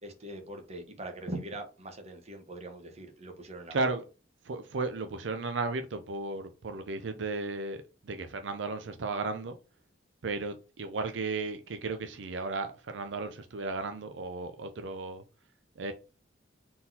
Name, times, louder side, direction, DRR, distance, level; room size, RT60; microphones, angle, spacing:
voice 1, 0.0-3.9, right 1 dB, 35° right, 1.1 m, -42 dB
voice 2, 3.7-4.0 4.4-9.6 10.2-15.2 15.8-15.9, right 3 dB, 75° right, 0.5 m, -34 dB
4.1 x 3.9 x 2.8 m
head